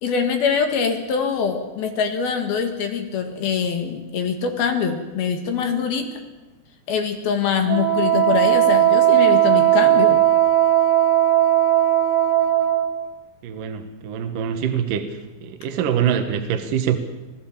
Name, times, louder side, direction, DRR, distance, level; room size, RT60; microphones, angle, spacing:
voice 1, 0.0-6.1 6.9-10.2, left 6 dB, 60° left, 5 dB, 3.1 m, -23 dB
Wind instrument woodwind instrument, 7.7-12.9, right 12 dB, 85° right, 4.6 m, -17 dB
voice 2, 13.4-15.1 15.4-17.0, right 8 dB, 70° right, 6 dB, 2.1 m, -24 dB
26.5 x 17.0 x 7.3 m, 1.2 s
omnidirectional pair, 5.8 m